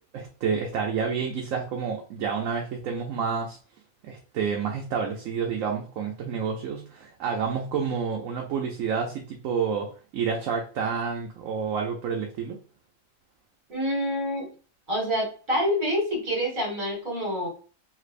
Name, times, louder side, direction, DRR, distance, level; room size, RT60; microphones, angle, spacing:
voice 1, 0.1-3.6 4.0-9.9 10.1-12.6, right 6 dB, 75° right, 1 dB, 1.0 m, -29 dB
voice 2, 13.7-14.5 14.9-17.5, equal, 35° right, -2 dB, 1.8 m, -27 dB
3.2 x 3.2 x 2.5 m, 0.38 s
omnidirectional pair, 1.4 m